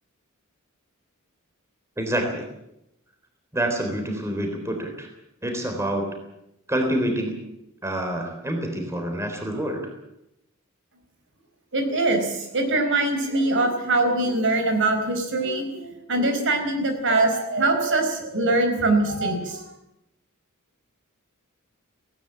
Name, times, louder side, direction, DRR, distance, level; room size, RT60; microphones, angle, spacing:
voice 1, 2.0-2.4 3.5-5.1 5.4-6.1 6.7-7.4 7.8-9.9, right 1 dB, 15° right, 3 dB, 3.7 m, -27 dB
voice 2, 11.7-15.8 16.1-19.6, right 2 dB, 60° right, 5 dB, 4.6 m, -23 dB
18.0 x 18.0 x 8.8 m, 0.85 s
head